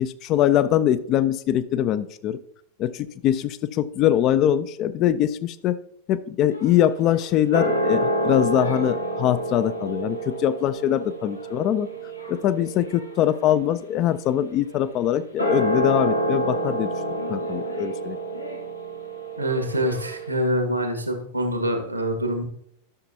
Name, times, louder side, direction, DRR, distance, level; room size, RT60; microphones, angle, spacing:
voice 1, 0.0-2.4 2.8-5.8 6.1-11.9 12.3-16.9 17.3-18.2, left 11 dB, 35° left, 15 dB, 0.5 m, -22 dB
sound 1, 6.5-20.3, right 1 dB, 90° left, 1.5 m, -28 dB
voice 2, 19.4-22.4, equal, 85° right, 6 dB, 1.5 m, -25 dB
12.5 x 6.8 x 2.8 m, 0.70 s
figure-of-eight pair, 90°, 0 cm